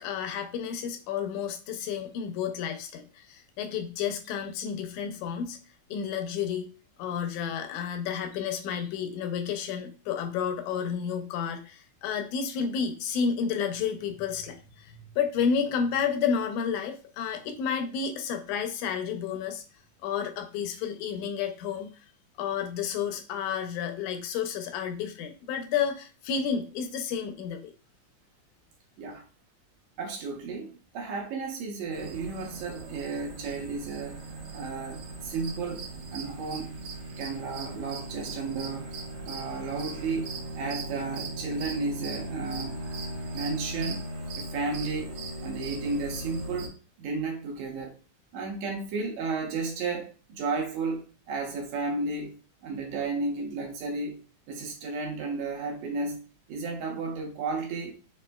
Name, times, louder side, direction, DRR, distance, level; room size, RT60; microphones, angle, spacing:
voice 1, 0.0-5.6 5.9-6.7 7.0-19.6 20.0-22.0 22.4-27.7, left 7 dB, 80° left, 1.9 m, -31 dB
voice 2, 30.0-34.2 34.5-36.8 37.2-38.9 39.2-42.8 43.3-44.0 44.4-48.0 48.3-52.4 52.6-54.2 54.5-56.2 56.5-57.9, right 3 dB, 75° right, 1.8 m, -33 dB
sound 1, 31.9-46.7, right 2 dB, 60° right, 1.7 m, -38 dB
5.2 x 2.4 x 2.2 m
omnidirectional pair, 3.6 m